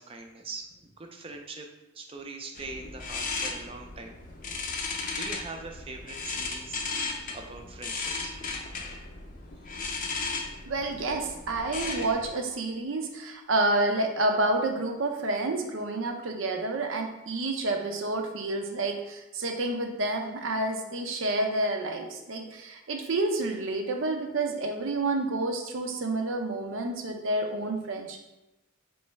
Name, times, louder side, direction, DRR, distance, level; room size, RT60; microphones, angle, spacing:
voice 1, 0.0-1.7 1.9-4.2 4.6-4.7 5.2-6.9 7.3-8.4, right 3 dB, 30° right, 4 dB, 0.5 m, -42 dB
sound 1, 2.5-12.3, left 4 dB, 40° left, 0.5 m, -36 dB
voice 2, 10.7-28.2, right 2 dB, 75° right, 3 dB, 0.6 m, -29 dB
4.6 x 3.1 x 3.1 m, 0.94 s
head